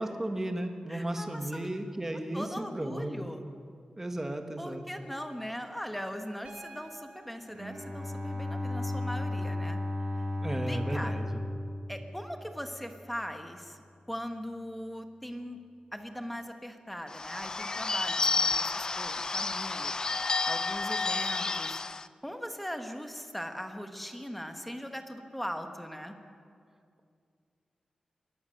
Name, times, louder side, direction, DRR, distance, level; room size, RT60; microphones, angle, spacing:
voice 1, 0.0-2.5 2.7-3.1 4.0-4.8 10.4-11.4, right 1 dB, 15° right, 6 dB, 1.5 m, -34 dB
voice 2, 0.9-1.7 2.3-3.4 4.6-9.8 10.1-10.2 10.6-11.2 11.9-15.6 15.9-19.9 20.4-21.8 22.2-26.1, equal, 5° left, 5 dB, 1.4 m, -40 dB
Piano, 6.4-10.4 12.0-12.1, right 3 dB, 70° right, 3.6 m, -56 dB
Bowed string instrument, 7.5-12.8, left 2 dB, 35° right, 5.9 m, -35 dB
Bird / Bell, 17.1-22.1, left 4 dB, 30° left, 0.4 m, -31 dB
22.5 x 18.0 x 6.6 m, 2.3 s
wide cardioid pair, 155°, 2 cm